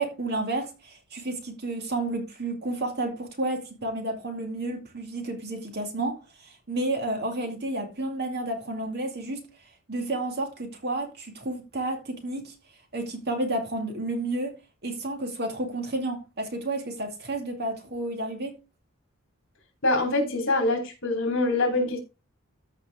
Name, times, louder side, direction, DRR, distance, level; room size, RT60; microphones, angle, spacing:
voice 1, 0.0-9.5 9.9-12.5 12.9-14.6 14.8-18.6, right 2 dB, 45° right, 2.3 m, -31 dB
voice 2, 19.8-22.0, left 2 dB, 55° left, 3.4 m, -24 dB
14.5 x 5.0 x 3.5 m
head